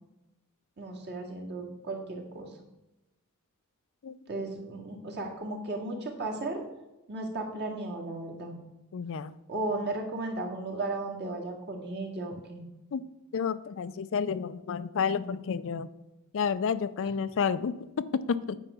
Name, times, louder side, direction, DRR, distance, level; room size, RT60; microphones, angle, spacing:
voice 1, 0.8-2.5 4.3-6.6 7.1-8.5 9.5-12.6, right 2 dB, 50° right, 0 dB, 2.1 m, -35 dB
voice 2, 8.9-9.4 12.9-13.0 13.3-15.9 16.3-18.6, left 6 dB, 60° left, 14 dB, 0.4 m, -30 dB
9.1 x 5.0 x 6.8 m, 0.95 s
head